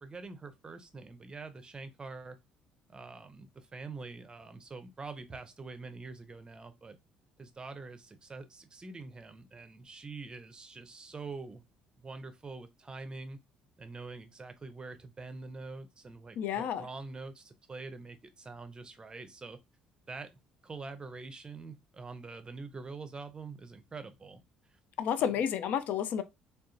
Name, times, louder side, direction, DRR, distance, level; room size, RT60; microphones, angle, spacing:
voice 1, 0.0-2.4 2.9-7.0 7.4-11.6 12.0-13.4 13.8-19.6 20.1-20.3 20.6-24.4 24.7-24.8 25.2-25.3, right 3 dB, 25° right, 0.6 m, -45 dB
voice 2, 16.4-16.9 25.0-26.2, left 9 dB, 50° left, 0.4 m, -31 dB
3.6 x 2.3 x 2.4 m
figure-of-eight pair, 50°, 4 cm